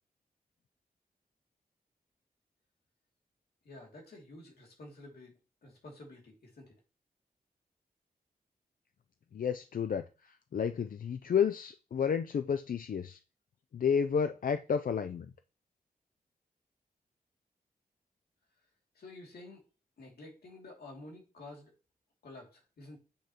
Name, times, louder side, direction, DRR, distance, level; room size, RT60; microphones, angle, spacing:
voice 1, 3.6-6.7 18.9-19.6 20.0-21.7 22.2-23.0, left 2 dB, 85° left, 2.5 m, -50 dB
voice 2, 9.3-10.0 10.5-13.2 13.7-15.3, left 7 dB, 65° left, 0.5 m, -31 dB
8.1 x 6.2 x 2.9 m
cardioid pair, 50°, 16 cm